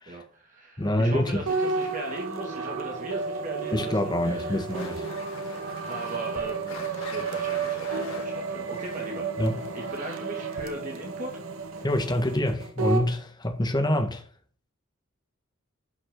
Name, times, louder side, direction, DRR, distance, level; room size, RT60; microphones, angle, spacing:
voice 1, 0.1-4.6 5.9-9.3 9.7-11.4, right 1 dB, 40° right, 2.2 m, -38 dB
voice 2, 0.8-1.4 3.7-5.0 5.4-5.5 9.4-9.6 11.8-14.2, left 1 dB, 20° left, 1.5 m, -26 dB
sound 1, 1.5-13.1, right 4 dB, 85° right, 1.5 m, -32 dB
sound 2, 4.7-10.3, left 4 dB, 80° left, 3.3 m, -45 dB
11.5 x 6.2 x 3.8 m
head